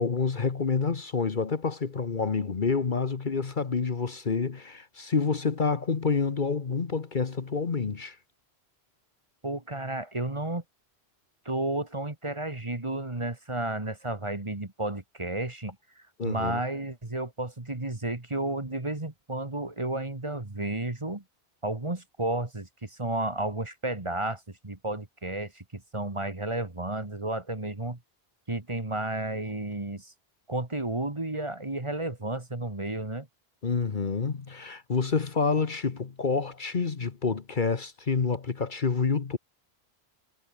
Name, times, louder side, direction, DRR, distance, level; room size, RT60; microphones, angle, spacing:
voice 1, 0.0-8.2 16.2-16.6 33.6-39.4, left 5 dB, 50° left, 1.3 m, -28 dB
voice 2, 9.4-10.6 11.5-15.8 16.2-21.2 21.6-28.0 28.5-30.1 30.5-33.3, right 2 dB, 30° right, 1.9 m, -32 dB
omnidirectional pair, 1.1 m